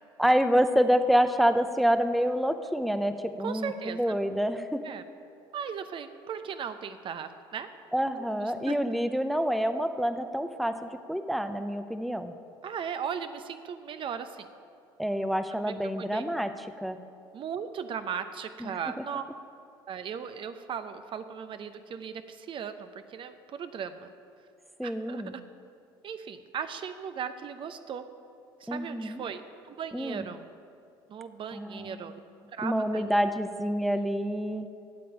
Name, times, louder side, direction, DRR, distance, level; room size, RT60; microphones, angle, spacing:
voice 1, 0.2-4.8 7.9-12.3 15.0-17.0 18.6-19.0 24.8-25.3 28.7-29.2 29.9-30.2 31.5-32.0 32.6-34.7, equal, ahead, 8 dB, 0.7 m, -27 dB
voice 2, 3.4-4.0 4.8-5.0 5.5-7.7 8.4-8.8 12.6-14.5 15.5-16.3 17.3-19.2 19.9-24.1 24.8-25.4 26.0-28.1 28.6-29.4 29.7-30.5 31.1-32.1 32.5-33.1, right 7 dB, 45° right, 9 dB, 0.8 m, -37 dB
8.7 x 7.7 x 8.9 m, 2.5 s
hypercardioid pair, 70°, 12 cm